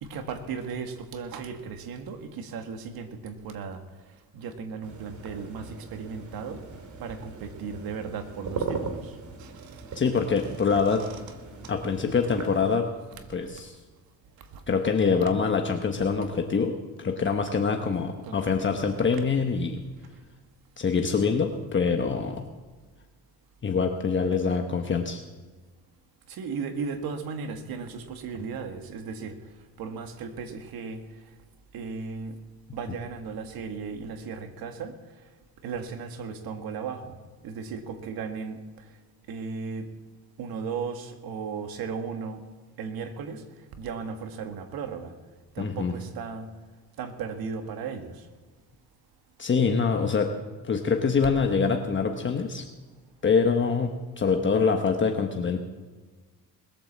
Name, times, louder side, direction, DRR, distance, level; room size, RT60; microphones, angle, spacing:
voice 1, 0.0-3.8 4.3-6.6 7.0-9.1 9.4-9.5 9.9-10.0 10.9-11.2 18.2-18.5 26.3-29.4 29.8-31.0 31.7-32.4 32.7-35.0 35.6-37.2 37.4-38.6 39.3-39.9 40.4-42.4 42.8-43.4 43.8-45.1 45.6-46.5 47.0-48.2, right 5 dB, 75° right, 6 dB, 1.9 m, -36 dB
sound 1, 4.8-12.8, right 4 dB, 55° right, 2.6 m, -39 dB
voice 2, 9.9-11.1 11.7-12.9 13.3-13.7 14.7-19.8 20.8-22.4 23.6-25.2 45.6-45.9 49.4-50.3 50.6-52.6 53.2-55.6, left 5 dB, 30° left, 4 dB, 1.2 m, -25 dB
20.5 x 8.8 x 7.5 m, 1.4 s
cardioid pair, 105°, 36 cm